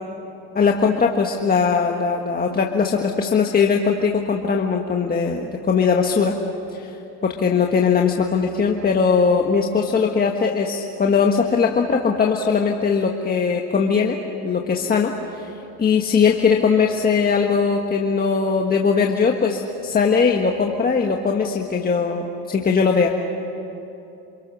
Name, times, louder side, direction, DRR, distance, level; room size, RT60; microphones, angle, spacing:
voice 1, 0.5-6.4 6.7-6.9 7.2-15.5 15.8-23.1, left 5 dB, 25° left, 1 dB, 1.6 m, -20 dB
28.5 x 26.0 x 6.3 m, 3.0 s
supercardioid pair, 120°, 39 cm